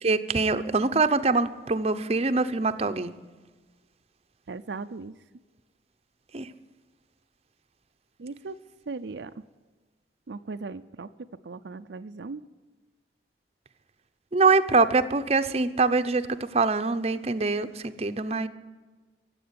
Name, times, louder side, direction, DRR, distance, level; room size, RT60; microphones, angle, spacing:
voice 1, 0.0-3.1 6.3-6.5 14.3-16.3 16.5-18.5, right 3 dB, 35° right, 10 dB, 0.7 m, -24 dB
voice 2, 4.5-5.1 8.2-8.6 8.9-9.3 10.3-11.1 11.4-12.4, right 4 dB, 80° right, 9 dB, 0.5 m, -37 dB
16.0 x 7.9 x 9.4 m, 1.3 s
head